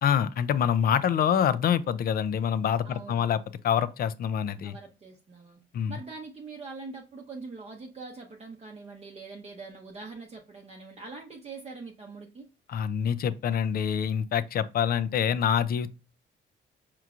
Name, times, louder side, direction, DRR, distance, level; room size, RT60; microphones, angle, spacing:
voice 1, 0.0-4.8 5.7-5.9 12.7-15.9, left 8 dB, 50° left, 0.4 m, -26 dB
voice 2, 2.8-3.3 4.6-5.6 5.9-12.4, right 3 dB, 30° right, 0.6 m, -43 dB
4.6 x 3.0 x 2.4 m
cardioid pair, 90°, 20 cm